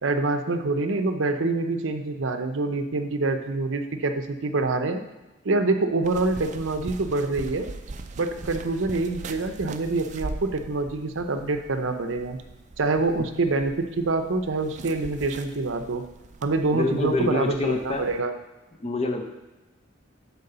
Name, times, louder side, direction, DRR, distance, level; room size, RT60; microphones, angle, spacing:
voice 1, 0.0-5.0 5.4-7.7 8.2-12.4 12.8-16.0 16.4-18.3, right 3 dB, 80° right, 7 dB, 0.7 m, -26 dB
sound 1, 6.0-18.2, right 3 dB, 40° right, 0.4 m, -41 dB
voice 2, 16.7-18.1 18.8-19.3, left 2 dB, 30° left, 4 dB, 0.7 m, -26 dB
6.7 x 4.5 x 6.7 m, 1.1 s
head